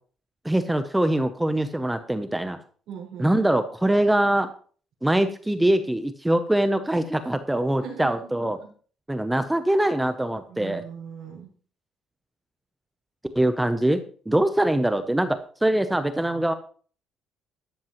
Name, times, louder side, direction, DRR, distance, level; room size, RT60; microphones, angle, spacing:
voice 1, 0.4-2.6 3.2-4.5 5.0-8.6 9.1-10.8 13.4-14.0 14.3-16.5, right 1 dB, 5° right, 9 dB, 0.6 m, -23 dB
voice 2, 2.9-3.3 7.8-8.7 10.5-11.5, right 7 dB, 65° right, -6 dB, 4.6 m, -39 dB
13.0 x 12.5 x 3.0 m, 0.43 s
cardioid pair, 170°, 0 cm